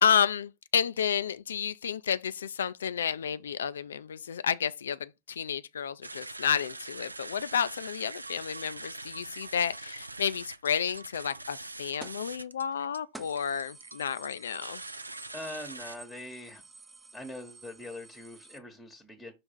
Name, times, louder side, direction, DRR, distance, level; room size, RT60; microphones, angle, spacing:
voice 1, 0.0-14.8, left 8 dB, 65° left, 0.4 m, -31 dB
sound 1, 6.0-16.0, right 2 dB, 80° right, 0.3 m, -43 dB
sound 2, 12.0-12.3 12.7-12.8 13.1-18.6, right 3 dB, 10° right, 0.6 m, -51 dB
voice 2, 15.3-16.6 17.1-19.3, left 1 dB, 5° left, 1.1 m, -42 dB
5.8 x 3.4 x 5.3 m
figure-of-eight pair, 90°, 0 cm